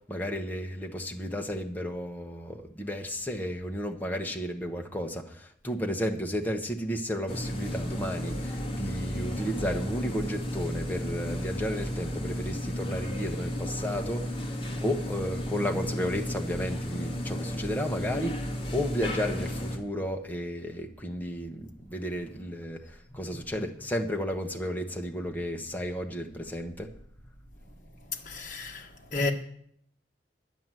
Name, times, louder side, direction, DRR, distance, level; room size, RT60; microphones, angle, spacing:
voice 1, 0.0-26.9, equal, 10° left, 1.1 m, -33 dB
sound 1, 7.3-19.8, equal, 30° left, 1.7 m, -33 dB
voice 2, 28.1-29.3, left 3 dB, 45° left, 1.6 m, -33 dB
11.0 x 9.4 x 7.6 m
head